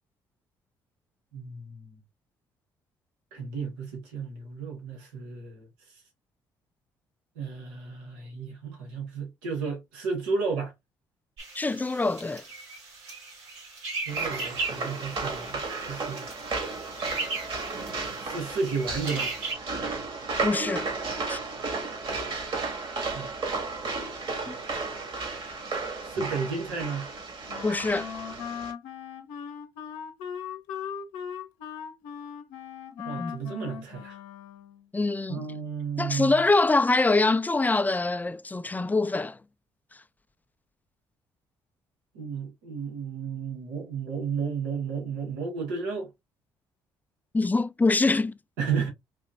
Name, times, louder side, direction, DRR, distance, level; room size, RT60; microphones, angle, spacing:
voice 1, 1.3-2.0 3.3-5.7 7.3-10.7 14.0-16.3 18.2-19.3 23.1-23.4 26.0-27.1 33.0-34.2 35.3-36.4 42.1-46.1 48.6-48.9, right 5 dB, 90° right, 1.4 m, -33 dB
sound 1, 11.4-19.5, right 3 dB, 70° right, 2.5 m, -37 dB
voice 2, 11.5-12.5 20.4-20.9 21.3-21.4 24.5-24.6 27.6-28.1 33.2-33.3 34.9-35.4 36.0-39.4 47.3-48.4, left 3 dB, 15° left, 0.4 m, -24 dB
sound 2, 14.1-28.7, right 3 dB, 55° right, 1.9 m, -34 dB
Wind instrument woodwind instrument, 27.5-34.9, left 8 dB, 80° left, 0.7 m, -39 dB
4.1 x 2.9 x 2.5 m
hypercardioid pair, 55°, 10 cm